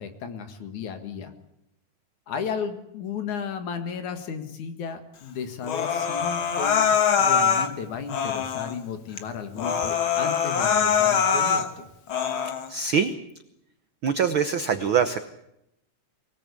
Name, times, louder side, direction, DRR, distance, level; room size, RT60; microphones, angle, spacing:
voice 1, 0.0-1.3 2.3-11.9, left 6 dB, 65° left, 8 dB, 3.2 m, -34 dB
Human voice, 5.6-7.7 8.1-8.7 9.2-9.3 9.6-11.7 12.1-12.7, left 7 dB, 50° left, 1.8 m, -23 dB
voice 2, 12.7-13.1 14.0-15.2, right 7 dB, 80° right, 10 dB, 1.1 m, -23 dB
23.5 x 18.0 x 8.4 m, 0.81 s
omnidirectional pair, 3.8 m